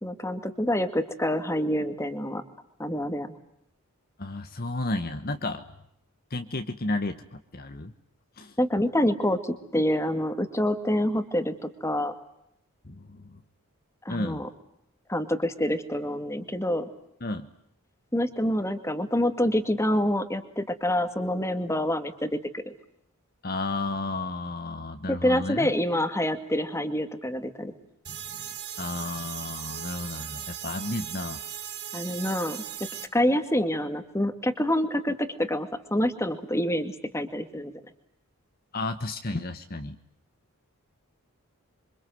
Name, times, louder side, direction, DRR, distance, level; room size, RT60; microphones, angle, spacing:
voice 1, 0.0-2.4 2.8-3.4 8.6-12.1 14.0-14.5 15.1-16.9 18.1-22.6 25.1-27.7 31.9-32.6 33.1-37.7, left 1 dB, 10° left, 9 dB, 2.1 m, -27 dB
voice 2, 4.2-5.6 6.3-7.9 8.4-8.5 12.8-13.4 14.1-14.4 17.2-17.5 23.4-25.7 28.1-28.5 28.8-31.4 38.7-40.0, left 2 dB, 45° left, 7 dB, 1.3 m, -32 dB
sound 1, 28.0-33.0, right 10 dB, 50° right, 3.4 m, -38 dB
27.5 x 25.0 x 7.9 m, 0.75 s
head